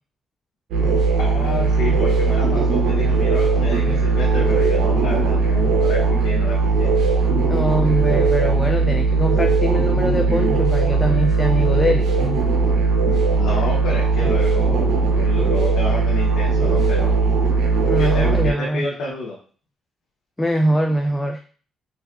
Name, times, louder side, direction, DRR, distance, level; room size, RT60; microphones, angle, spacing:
sound 1, 0.7-18.5, right 4 dB, 85° right, 0.6 m, -18 dB
voice 1, 1.2-6.9 13.1-17.1 18.0-19.4, left 3 dB, 85° left, -5 dB, 0.8 m, -29 dB
voice 2, 7.5-12.1 17.9-18.8 20.4-21.4, equal, 10° left, 4 dB, 0.3 m, -22 dB
3.3 x 2.5 x 2.3 m, 0.41 s
cardioid pair, 90°, 0 cm